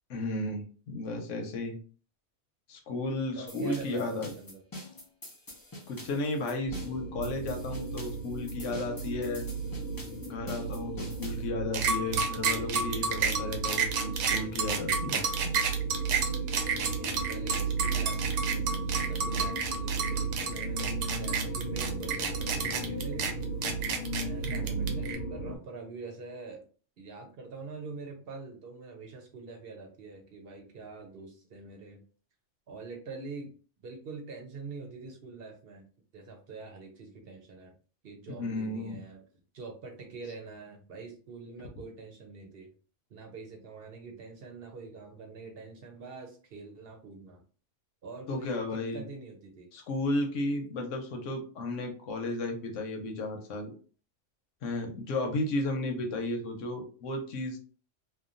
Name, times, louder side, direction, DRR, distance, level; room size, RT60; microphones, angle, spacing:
voice 1, 0.1-1.8 2.7-4.3 5.9-9.5 10.3-15.3 24.4-24.9 38.3-39.0 48.3-49.0 49.7-53.7 54.6-57.6, left 2 dB, 90° left, 3 dB, 1.1 m, -34 dB
voice 2, 3.4-4.6 12.5-12.8 13.3-13.6 16.7-23.3 24.1-26.7 27.0-32.0 32.7-33.5 33.8-35.8 36.1-37.7 38.0-39.2 39.5-42.7 43.1-47.4 48.0-49.7, right 4 dB, 60° right, 3 dB, 0.8 m, -45 dB
sound 1, 3.5-11.5, left 1 dB, 25° left, 0.5 m, -46 dB
sound 2, 6.7-25.6, right 4 dB, 60° left, 0.7 m, -35 dB
sound 3, 11.7-25.2, right 5 dB, 80° right, 0.9 m, -30 dB
3.0 x 2.2 x 2.5 m, 0.39 s
omnidirectional pair, 1.3 m